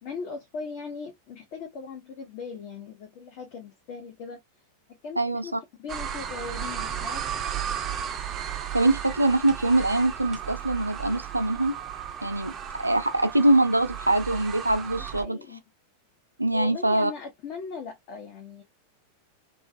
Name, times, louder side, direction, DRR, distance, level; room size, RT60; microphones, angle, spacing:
voice 1, 0.0-4.4 5.0-5.5 5.8-7.2 15.0-15.6 16.5-18.6, left 5 dB, 45° left, 0.7 m, -39 dB
voice 2, 5.2-5.6 8.7-11.7 12.2-12.5 12.8-15.4 16.4-17.1, right 2 dB, 85° right, 0.4 m, -23 dB
sound 1, 5.9-15.3, right 9 dB, 30° right, 0.4 m, -34 dB
2.5 x 2.4 x 2.5 m
figure-of-eight pair, 90°, 0 cm